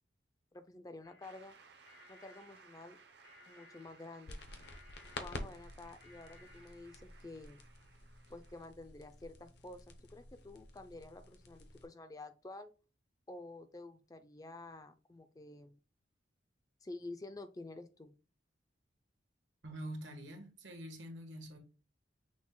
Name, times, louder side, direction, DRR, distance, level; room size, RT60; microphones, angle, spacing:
voice 1, 0.5-1.6 2.1-3.0 3.5-4.4 5.2-7.6 8.3-12.7 13.3-15.8 16.8-18.1, left 2 dB, 20° left, 0.4 m, -50 dB
sound 1, 1.0-7.1, left 3 dB, 90° left, 1.4 m, -63 dB
Shout / Cheering / Applause, 1.2-8.7, right 5 dB, 60° right, 0.7 m, -62 dB
sound 2, 4.3-11.9, left 2 dB, 60° left, 0.7 m, -50 dB
voice 2, 19.6-21.6, right 1 dB, 85° right, 1.3 m, -46 dB
6.1 x 2.2 x 3.8 m
head